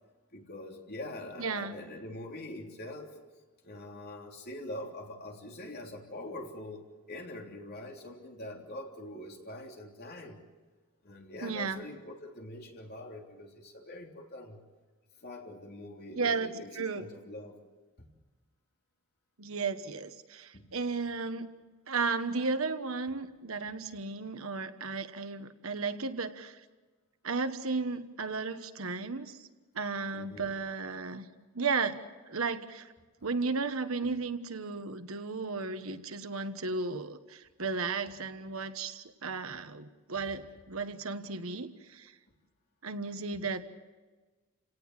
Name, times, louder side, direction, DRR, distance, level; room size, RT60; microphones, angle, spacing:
voice 1, 0.3-3.1 3.6-10.4 11.0-14.6 15.2-17.6 18.0-18.1 20.5-20.7 30.1-30.6 33.2-33.3 34.0-34.1, left 1 dB, 45° left, 1 dB, 3.4 m, -44 dB
voice 2, 1.4-1.8 11.4-11.8 16.2-17.1 19.4-21.5 21.9-26.6 27.2-29.4 29.7-31.2 31.5-32.9 33.2-42.1 42.8-43.6, right 4 dB, 70° right, 9 dB, 1.3 m, -34 dB
29.5 x 18.0 x 7.4 m, 1.3 s
head